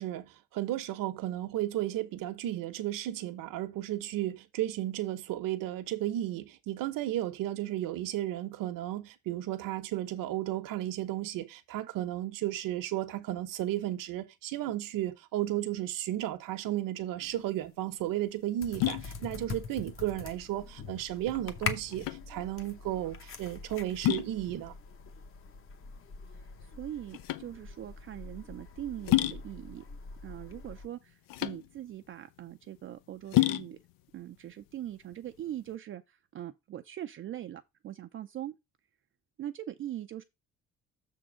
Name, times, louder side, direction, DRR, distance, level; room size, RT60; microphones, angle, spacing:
voice 1, 0.0-24.7, right 14 dB, 75° right, 1.0 m, -34 dB
sound 1, 17.2-35.8, left 16 dB, 90° left, 0.6 m, -34 dB
sound 2, 18.6-30.9, left 5 dB, 40° left, 0.9 m, -43 dB
voice 2, 26.3-29.8 30.2-33.8 34.1-38.5 39.4-40.2, right 12 dB, 40° right, 0.4 m, -41 dB
6.8 x 3.7 x 6.2 m
cardioid pair, 165°, 33 cm